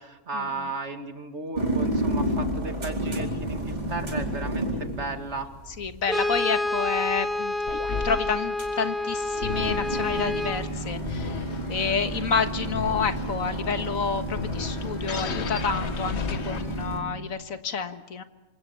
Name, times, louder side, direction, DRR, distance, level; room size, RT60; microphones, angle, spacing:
voice 1, 0.0-5.5, right 3 dB, 55° right, 7 dB, 2.3 m, -35 dB
sound 1, 1.6-17.0, right 1 dB, 30° right, 4.5 m, -31 dB
voice 2, 5.8-7.5 8.0-11.4 11.7-18.2, left 6 dB, 80° left, 9 dB, 1.8 m, -29 dB
Brass instrument, 6.1-10.7, left 2 dB, ahead, 1.3 m, -28 dB
sound 2, 7.7-17.1, left 6 dB, 55° left, 1.3 m, -36 dB
27.5 x 25.5 x 8.2 m, 1.1 s
omnidirectional pair, 1.4 m